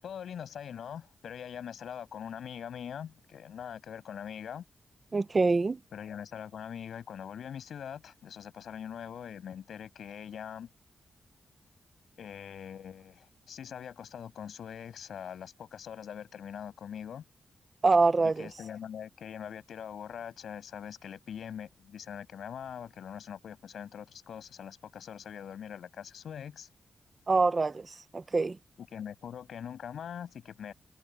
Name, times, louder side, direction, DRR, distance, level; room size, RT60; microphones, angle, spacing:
voice 1, 0.0-4.6 5.9-10.7 12.2-17.2 18.4-26.7 28.8-30.7, left 8 dB, 85° left, 7.4 m, -42 dB
voice 2, 5.1-5.8 17.8-18.5 27.3-28.6, right 3 dB, 35° right, 0.8 m, -25 dB
cardioid pair, 100°, 0 cm